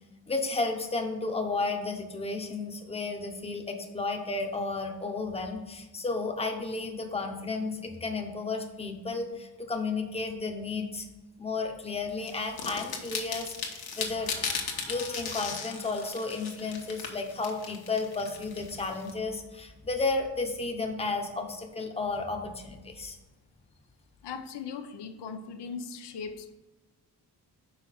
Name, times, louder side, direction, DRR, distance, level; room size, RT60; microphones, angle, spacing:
voice 1, 0.3-11.1 11.4-23.2, left 3 dB, 15° left, 3 dB, 0.8 m, -33 dB
sound 1, 12.3-19.1, left 5 dB, 65° left, 1.2 m, -37 dB
voice 2, 24.2-26.5, left 5 dB, 85° left, 8 dB, 0.7 m, -39 dB
5.7 x 4.5 x 6.3 m, 1.1 s
wide cardioid pair, 130°, 40 cm